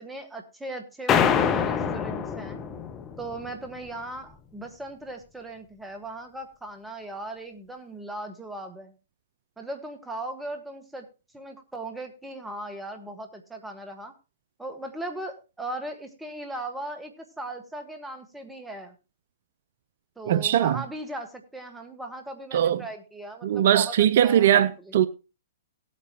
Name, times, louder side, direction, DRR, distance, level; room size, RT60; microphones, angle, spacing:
voice 1, 0.0-2.6 3.2-8.9 9.6-11.1 11.3-14.1 14.6-19.0 20.2-24.9, right 2 dB, 5° right, 1.8 m, -38 dB
sound 1, 1.1-3.5, left 7 dB, 25° left, 1.0 m, -25 dB
voice 2, 20.3-20.8 22.5-22.8 23.4-25.1, right 10 dB, 60° right, 0.5 m, -20 dB
17.5 x 8.5 x 3.0 m
hypercardioid pair, 120°, 0 cm